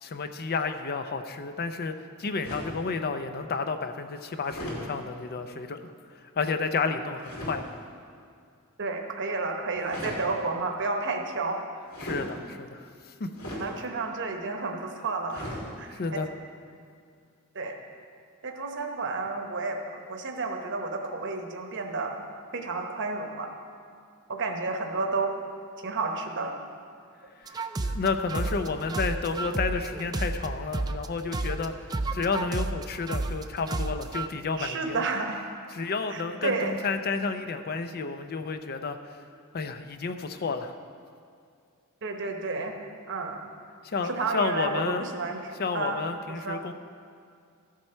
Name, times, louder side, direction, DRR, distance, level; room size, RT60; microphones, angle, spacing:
voice 1, 0.0-1.9 2.2-7.7 12.0-13.3 15.9-16.3 27.4-35.0 35.7-39.2 39.5-40.7 43.8-45.0 45.6-46.7, left 4 dB, 45° left, 8 dB, 0.5 m, -31 dB
sound 1, 2.4-2.8 4.4-4.8 7.2-7.6 9.7-10.2 11.9-12.3 13.3-13.7 15.3-15.6, equal, 65° left, 2.9 m, -37 dB
voice 2, 8.8-11.7 13.6-16.0 17.5-17.8 18.4-19.8 20.1-22.2 22.5-23.5 24.3-25.3 25.8-26.6 34.6-35.4 36.1-36.7 42.0-42.7 43.1-43.4 44.0-46.0 46.3-46.6, right 3 dB, 60° right, 4 dB, 1.0 m, -31 dB
sound 2, 27.5-31.1 31.3-34.3, right 2 dB, 20° right, 0.3 m, -31 dB
13.5 x 7.6 x 4.4 m, 2.3 s
head